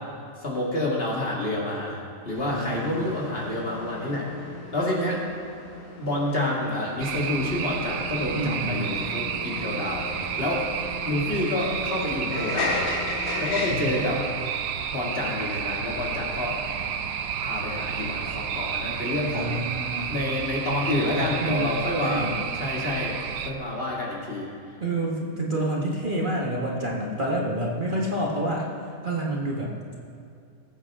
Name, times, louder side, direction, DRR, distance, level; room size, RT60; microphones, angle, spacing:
voice 1, 0.4-2.0 2.3-4.3 4.7-5.2 6.0-10.1 10.4-10.7 11.1-12.8 13.4-14.2 14.9-16.6 17.4-19.6 20.1-24.8, left 1 dB, 40° left, -4 dB, 2.3 m, -28 dB
sound 1, 2.3-13.9, left 3 dB, 80° left, 1.9 m, -36 dB
voice 2, 2.5-3.0 8.3-8.9 13.7-14.0 19.3-20.2 20.8-22.4 24.8-28.7 29.0-29.8, right 1 dB, 35° right, -3 dB, 1.5 m, -28 dB
sound 2, 7.0-23.5, right 8 dB, 85° right, 1.1 m, -31 dB
20.0 x 8.4 x 3.7 m, 2.4 s
omnidirectional pair, 1.5 m